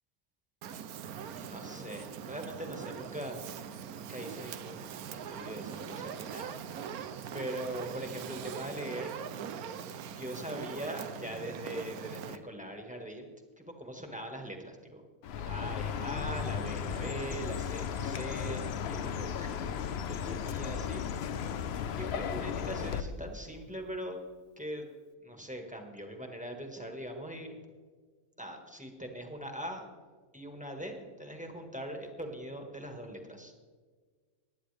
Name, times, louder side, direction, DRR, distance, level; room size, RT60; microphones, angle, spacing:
Fire, 0.6-12.4, right 8 dB, 90° right, 1.2 m, -42 dB
voice 1, 1.3-3.4 3.9-9.2 10.2-13.3 13.6-15.0 15.5-19.5 20.1-21.0 22.0-24.2 24.6-24.9 25.2-27.5 28.4-29.8 30.3-33.5, right 1 dB, 5° right, 2 dB, 1.5 m, -41 dB
Chirp tweet, 15.2-23.0, left 7 dB, 60° left, 0.7 m, -35 dB
20.5 x 9.7 x 3.4 m, 1.5 s
omnidirectional pair, 1.5 m